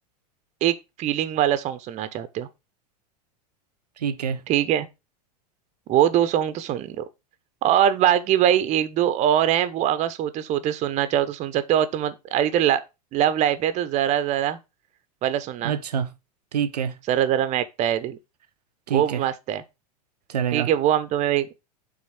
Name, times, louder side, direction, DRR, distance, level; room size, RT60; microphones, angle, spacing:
voice 1, 0.6-2.5 4.5-4.9 5.9-7.0 7.6-12.8 13.1-14.6 15.2-15.7 17.1-18.2 18.9-19.6 20.5-21.5, right 11 dB, 35° right, 0.8 m, -22 dB
voice 2, 4.0-4.4 15.6-16.1 16.5-17.0 18.9-19.2 20.3-20.7, right 8 dB, 80° right, 0.7 m, -26 dB
6.2 x 3.9 x 5.8 m
figure-of-eight pair, 90°, 20 cm